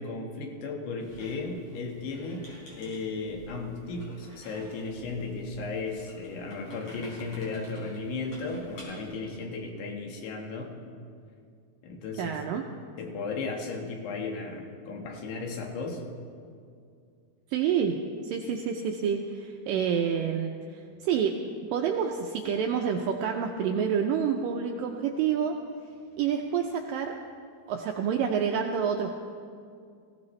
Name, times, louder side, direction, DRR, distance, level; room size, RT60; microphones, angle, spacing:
voice 1, 0.0-2.5 2.8-10.7 11.8-12.4 13.0-16.0, left 3 dB, 80° left, 1 dB, 3.6 m, -35 dB
Squeak, 1.0-9.1, equal, 35° left, 4.8 m, -50 dB
voice 2, 12.2-12.6 17.5-18.0 18.2-21.4 21.7-25.6 26.2-27.2 27.7-29.2, right 7 dB, 80° right, 3 dB, 2.0 m, -28 dB
20.0 x 16.0 x 3.2 m, 2.3 s
omnidirectional pair, 4.7 m